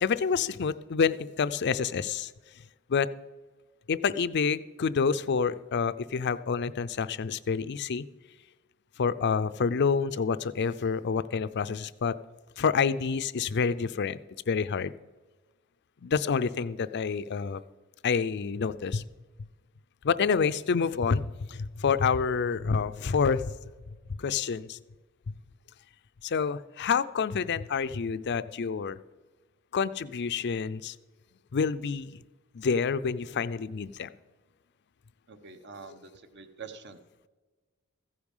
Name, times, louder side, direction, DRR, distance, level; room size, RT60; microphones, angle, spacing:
voice 1, 0.0-2.3 2.9-3.1 3.9-8.1 9.0-12.1 12.6-14.2 14.5-14.9 16.0-17.6 18.0-19.0 20.0-23.6 24.2-24.8 26.2-29.0 29.7-30.9 31.5-32.2 32.5-34.1, left 5 dB, 55° left, 14 dB, 0.5 m, -28 dB
voice 2, 35.3-37.0, right 5 dB, 55° right, 10 dB, 1.0 m, -45 dB
15.0 x 9.7 x 5.5 m, 1.3 s
head